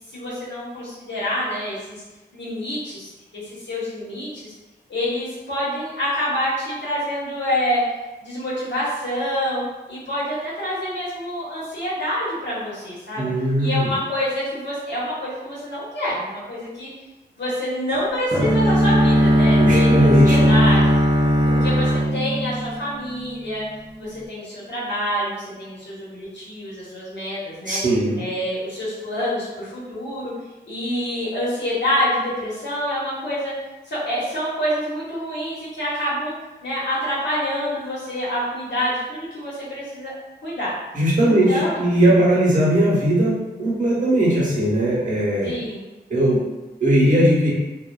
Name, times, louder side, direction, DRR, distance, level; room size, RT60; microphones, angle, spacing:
voice 1, 0.1-2.0 2.3-4.5 4.9-7.8 8.2-9.6 9.9-13.3 13.6-16.9 17.4-21.0 21.4-23.6 24.0-27.8 28.2-30.3 30.7-33.5 33.8-36.3 36.6-40.1 40.4-40.7 41.2-41.8 45.4-45.8, equal, 80° left, -8 dB, 1.0 m, -27 dB
voice 2, 13.2-13.9 19.6-20.5 27.6-28.2 40.9-45.5 46.1-46.4 46.8-47.5, right 1 dB, 45° right, -6 dB, 0.9 m, -19 dB
Bowed string instrument, 18.3-23.3, equal, 25° right, 0.5 m, -17 dB
2.5 x 2.3 x 2.2 m, 1.1 s
wide cardioid pair, 120°, 18 cm